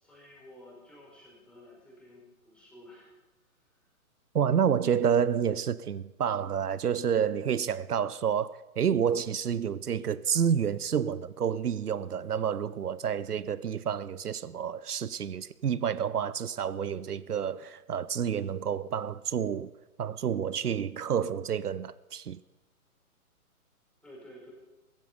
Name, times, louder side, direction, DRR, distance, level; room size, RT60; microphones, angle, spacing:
voice 1, 0.0-3.1 24.0-24.5, left 1 dB, ahead, 4.9 m, -52 dB
voice 2, 4.3-19.7 20.0-22.4, right 8 dB, 90° right, 0.7 m, -29 dB
15.0 x 15.0 x 5.2 m
figure-of-eight pair, 130°, 44 cm